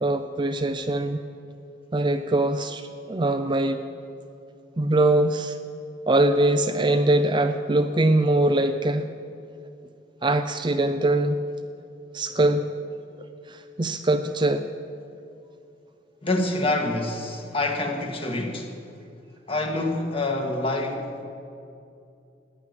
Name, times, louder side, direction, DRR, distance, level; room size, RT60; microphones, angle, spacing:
voice 1, 0.0-1.2 1.9-3.8 4.8-5.6 6.1-9.1 10.2-11.4 12.1-12.7 13.5-14.6, right 2 dB, 25° right, 0.6 m, -22 dB
voice 2, 16.2-18.7 19.5-21.3, left 2 dB, 30° left, 1.7 m, -26 dB
14.0 x 9.2 x 9.6 m
head